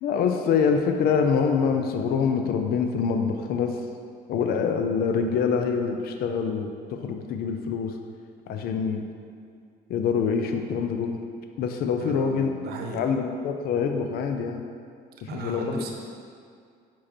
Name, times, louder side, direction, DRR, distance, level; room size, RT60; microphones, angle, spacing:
voice 1, 0.0-3.8 4.3-8.0 8.5-9.0 9.9-11.2 11.6-12.6 12.9-14.6 15.2-15.9, left 6 dB, 65° left, 5 dB, 0.5 m, -25 dB
voice 2, 12.0-13.1 15.3-15.9, right 3 dB, 70° right, 2 dB, 0.9 m, -36 dB
5.6 x 5.1 x 4.3 m, 2.3 s
cardioid pair, 110°, 17 cm